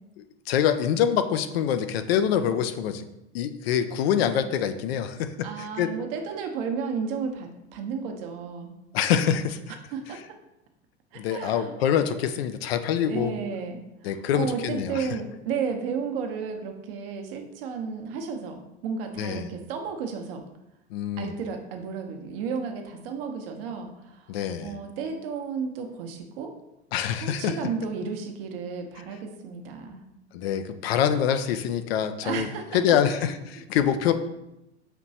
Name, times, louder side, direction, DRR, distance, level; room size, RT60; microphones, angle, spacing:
voice 1, 0.5-3.0 3.3-5.9 8.9-9.6 11.2-13.3 14.0-15.1 19.2-19.5 20.9-21.3 24.3-24.7 26.9-27.5 30.3-32.5 32.7-34.1, left 9 dB, 65° left, 10 dB, 0.5 m, -25 dB
voice 2, 5.4-8.7 9.9-10.2 11.1-11.7 13.1-20.4 21.2-26.5 27.2-30.0 32.2-32.8 33.0-33.3, right 5 dB, 55° right, 4 dB, 0.8 m, -33 dB
6.0 x 3.0 x 2.7 m, 0.89 s
figure-of-eight pair, 80°, 34 cm